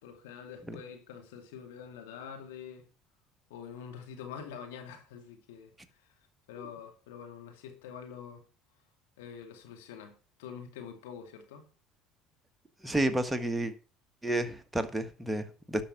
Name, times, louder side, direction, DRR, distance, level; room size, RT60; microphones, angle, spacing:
voice 1, 0.0-2.8 3.5-5.7 6.0-6.1 6.5-8.4 9.2-11.7, left 7 dB, 85° left, 2.4 m, -46 dB
voice 2, 12.8-13.7 14.2-15.8, right 1 dB, 10° right, 1.5 m, -31 dB
11.5 x 5.9 x 5.9 m
hypercardioid pair, 80°, 0 cm